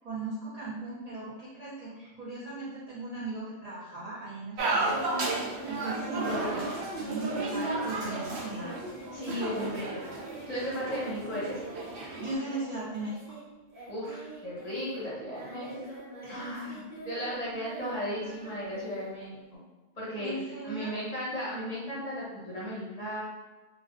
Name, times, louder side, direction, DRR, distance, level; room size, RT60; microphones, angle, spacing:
voice 1, 0.0-5.0 5.7-8.7 9.3-9.8 12.2-13.4 16.2-16.6 20.2-20.9, right 2 dB, 55° right, -9 dB, 0.4 m, -38 dB
sound 1, 4.6-12.3, right 2 dB, 80° right, 0.9 m, -33 dB
Singing, 5.5-13.4 13.7-19.6, right 1 dB, 25° right, 1.0 m, -47 dB
voice 2, 6.2-6.6 9.1-10.2 10.5-11.6 13.9-15.8 16.3-19.6 20.0-20.3 20.6-23.2, equal, 45° left, -7 dB, 0.6 m, -36 dB
2.6 x 2.0 x 2.4 m, 1.2 s
omnidirectional pair, 1.1 m